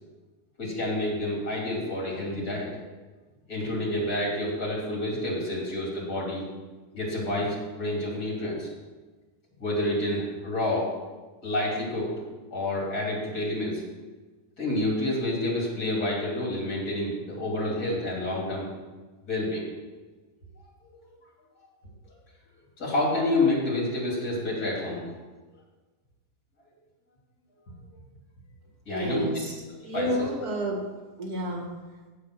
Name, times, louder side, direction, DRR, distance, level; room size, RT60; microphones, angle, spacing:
voice 1, 0.6-2.7 3.5-6.4 6.9-8.7 9.6-10.9 11.4-12.1 12.5-13.8 14.6-18.7 19.2-19.7 22.8-25.0 28.9-29.3 29.9-30.3, left 1 dB, 65° left, -4 dB, 3.4 m, -28 dB
voice 2, 28.9-29.6 29.8-30.8 31.2-31.7, equal, 65° right, 1 dB, 2.4 m, -30 dB
8.4 x 7.4 x 6.1 m, 1.3 s
omnidirectional pair, 1.7 m